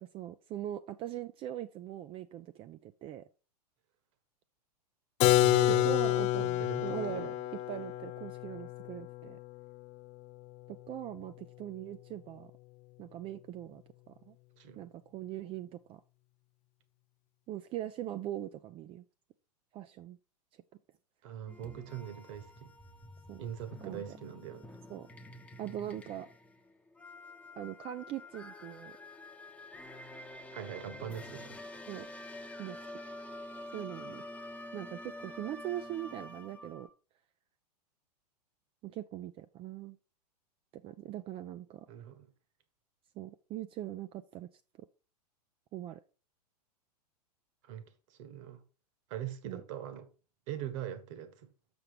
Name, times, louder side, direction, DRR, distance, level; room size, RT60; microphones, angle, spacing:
voice 1, 0.0-3.2 5.8-7.3 7.7-9.4 10.7-12.5 13.0-13.8 14.1-14.3 14.8-16.0 17.5-19.0 19.7-20.2 23.3-23.4 23.8-24.0 24.9-25.1 25.6-26.3 27.6-28.9 31.9-32.1 32.6-32.8 33.7-34.2 34.7-36.9 38.8-40.0 40.7-41.9 43.2-44.5 45.7-46.0 49.4-49.6, right 12 dB, 25° right, 0.4 m, -41 dB
Keyboard (musical), 5.2-10.8, left 15 dB, 35° left, 0.5 m, -29 dB
voice 2, 5.4-6.1 6.4-7.3 14.6-14.9 21.2-22.7 23.4-24.8 30.5-31.6 41.9-42.3 47.6-48.6 49.1-50.1 50.5-51.5, right 10 dB, 50° right, 1.5 m, -42 dB
sound 1, 21.5-36.9, left 1 dB, 5° left, 0.9 m, -48 dB
6.7 x 6.1 x 5.1 m
figure-of-eight pair, 100°, 21 cm